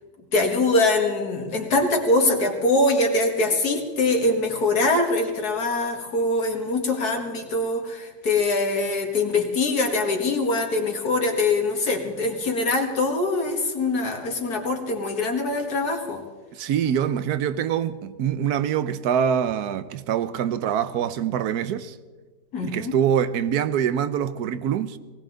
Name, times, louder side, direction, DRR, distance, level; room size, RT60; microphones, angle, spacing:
voice 1, 0.3-16.2 22.5-22.9, left 2 dB, 65° left, 2.3 m, -23 dB
voice 2, 16.5-22.0 22.6-25.0, right 9 dB, 70° right, 1.2 m, -24 dB
20.0 x 17.5 x 3.9 m
omnidirectional pair, 1.8 m